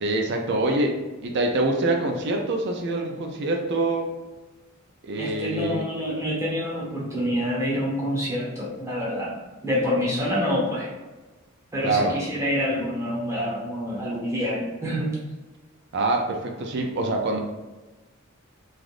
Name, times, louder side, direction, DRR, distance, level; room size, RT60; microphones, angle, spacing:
voice 1, 0.0-4.1 5.0-5.8 11.8-12.2 15.9-17.4, right 2 dB, 55° right, 3 dB, 0.4 m, -25 dB
voice 2, 5.2-9.4 9.6-10.9 11.7-15.1, equal, 15° right, -6 dB, 0.9 m, -27 dB
3.3 x 2.4 x 2.5 m, 1.2 s
head